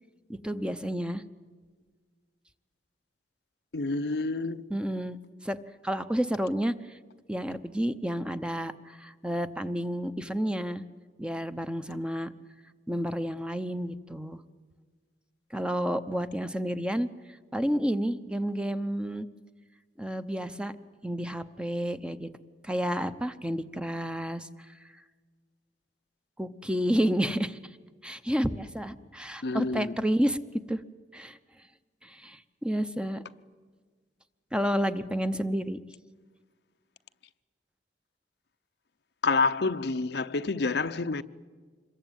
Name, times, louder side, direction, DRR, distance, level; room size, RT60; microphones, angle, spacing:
voice 1, 0.4-1.2 4.7-5.2 5.4-5.6 5.8-7.0 7.3-10.8 11.2-12.3 12.9-14.4 15.5-17.1 17.5-19.3 20.0-20.7 21.0-22.3 22.6-24.5 26.4-27.6 28.0-30.4 30.7-30.8 31.1-31.4 32.0-33.2 34.5-35.8, equal, 5° right, 0.8 m, -30 dB
voice 2, 3.7-4.6 29.4-29.9 39.2-41.2, left 3 dB, 65° left, 0.7 m, -28 dB
26.5 x 22.0 x 9.1 m
head